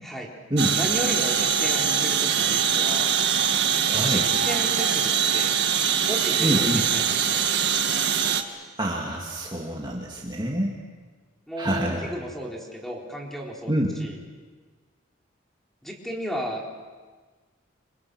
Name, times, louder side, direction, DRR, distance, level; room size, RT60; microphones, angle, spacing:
sound 1, 0.6-8.4, right 8 dB, 60° right, 1.7 m, -23 dB
voice 1, 0.7-3.1 4.0-5.5 6.1-7.4 11.5-13.7 14.0-14.2 15.8-16.8, equal, ahead, -1 dB, 4.1 m, -34 dB
voice 2, 3.9-4.3 6.4-6.9 8.8-10.7 11.6-12.1 13.7-13.9, right 1 dB, 25° right, -2 dB, 2.4 m, -26 dB
28.5 x 26.0 x 6.4 m, 1.4 s
head